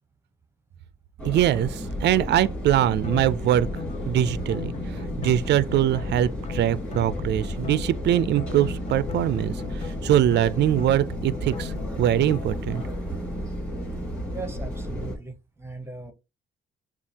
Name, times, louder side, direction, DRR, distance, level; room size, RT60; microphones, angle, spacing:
sound 1, 1.2-15.2, equal, 5° left, 2.2 m, -33 dB
voice 1, 1.2-3.7 4.1-12.8, right 11 dB, 60° right, 0.4 m, -23 dB
sound 2, 2.9-12.9, left 9 dB, 35° left, 0.4 m, -37 dB
voice 2, 14.3-16.1, right 3 dB, 10° right, 0.9 m, -38 dB
7.1 x 2.4 x 2.8 m
cardioid pair, 90°, 20 cm